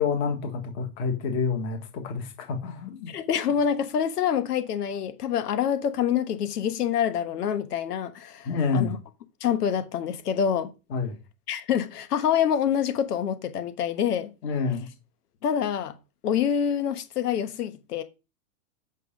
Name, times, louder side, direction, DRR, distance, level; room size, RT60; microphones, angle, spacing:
voice 1, 0.0-3.1 8.4-8.9 10.9-11.2 14.4-14.8, left 5 dB, 25° left, 1.6 m, -28 dB
voice 2, 3.1-9.0 9.4-10.7 11.5-14.3 15.4-15.9 16.2-18.0, left 8 dB, 85° left, 1.4 m, -26 dB
8.3 x 5.7 x 5.1 m
supercardioid pair, 170°, 46 cm